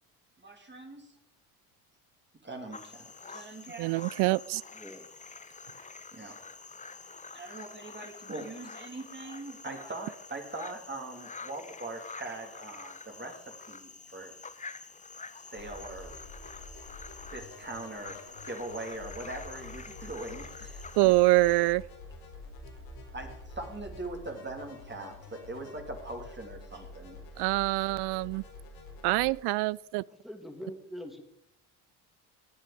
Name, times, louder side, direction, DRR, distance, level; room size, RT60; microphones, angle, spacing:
voice 1, 0.4-1.1 2.4-4.2 6.1-6.4 7.3-14.3 15.5-16.1 17.3-18.2 18.4-21.1 23.1-27.2, right 2 dB, 25° right, 2.8 m, -41 dB
sound 1, 2.7-21.7, left 4 dB, 15° left, 0.9 m, -47 dB
voice 2, 3.8-4.6 21.0-21.8 27.4-28.4 29.0-30.0, right 22 dB, 60° right, 0.5 m, -25 dB
voice 3, 4.7-5.1 30.1-31.2, equal, ahead, 2.6 m, -43 dB
sound 2, 15.6-29.3, left 2 dB, 80° left, 4.2 m, -48 dB
19.0 x 7.6 x 5.0 m
hypercardioid pair, 65°, 46 cm